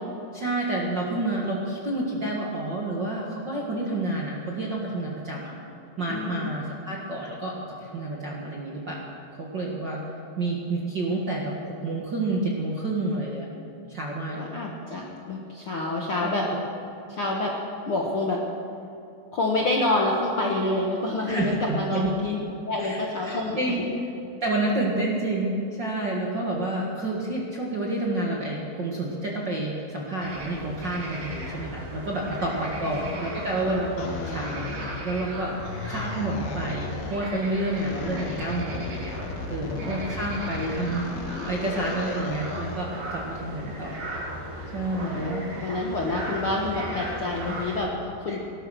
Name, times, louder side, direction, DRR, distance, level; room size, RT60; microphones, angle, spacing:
voice 1, 0.3-5.5 6.0-7.5 7.8-9.0 9.4-10.0 10.4-13.5 13.9-14.4 16.2-16.6 21.3-22.1 22.8-23.8 24.4-35.5 35.9-44.0 44.7-45.4 48.3-48.4, right 2 dB, 45° right, -3 dB, 1.5 m, -29 dB
voice 2, 6.1-6.5 14.4-16.5 17.1-17.5 17.8-18.4 19.3-23.9 32.4-33.2 39.6-39.9 44.9-48.4, left 2 dB, 55° left, -2 dB, 1.5 m, -28 dB
sound 1, 30.2-47.8, equal, 65° right, 5.5 m, -36 dB
sound 2, 34.0-35.3 35.6-37.3 37.7-42.9, left 5 dB, 85° left, 2.9 m, -36 dB
18.5 x 12.0 x 6.3 m, 2.8 s
omnidirectional pair, 4.2 m